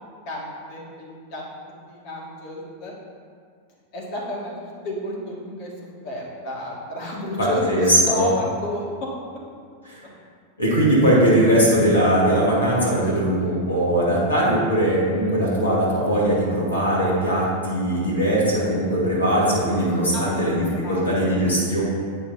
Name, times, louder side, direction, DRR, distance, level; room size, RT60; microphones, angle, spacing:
voice 1, 0.3-1.4 1.8-2.9 3.9-5.7 6.0-9.1 20.1-21.4, left 1 dB, 45° left, -4 dB, 1.9 m, -31 dB
voice 2, 7.4-8.3 9.9-10.0 10.6-21.8, right 1 dB, 80° left, -6 dB, 1.5 m, -20 dB
8.5 x 6.5 x 2.7 m, 2.1 s
figure-of-eight pair, 90°, 0 cm